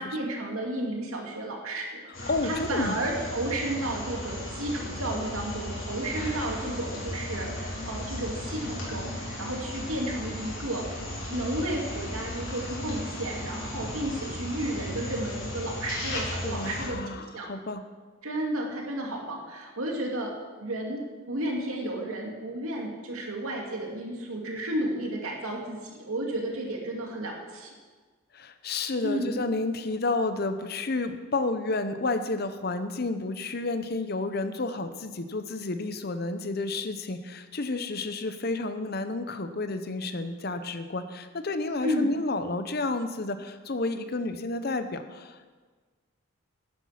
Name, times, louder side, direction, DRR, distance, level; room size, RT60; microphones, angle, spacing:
voice 1, 0.0-2.1 2.4-11.0 11.3-17.5 18.2-20.3 20.6-27.7 29.0-29.5 41.8-42.2, right 1 dB, 85° right, 0 dB, 2.4 m, -32 dB
sound 1, 2.1-16.9, left 1 dB, 65° left, 3.9 m, -36 dB
voice 2, 2.3-3.0 16.4-17.8 28.3-45.5, left 2 dB, 45° left, 10 dB, 0.7 m, -31 dB
11.0 x 10.0 x 5.8 m, 1.4 s
head